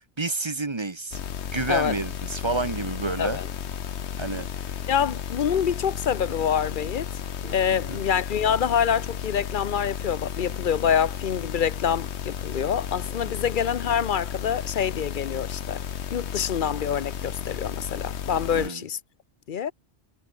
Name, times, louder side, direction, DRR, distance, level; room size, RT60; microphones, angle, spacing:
voice 1, 0.2-1.2 1.5-3.4 4.2-4.5 7.7-8.0 18.5-18.8, right 3 dB, 25° right, 1.0 m, -29 dB
sound 1, 1.1-18.7, left 8 dB, 70° left, 1.2 m, -33 dB
voice 2, 4.9-7.1 7.5-15.8 16.1-19.0 19.5-19.7, left 8 dB, 50° left, 0.8 m, -26 dB
sound 2, 7.1-12.3, right 1 dB, 40° right, 5.2 m, -55 dB
omnidirectional pair, 1.2 m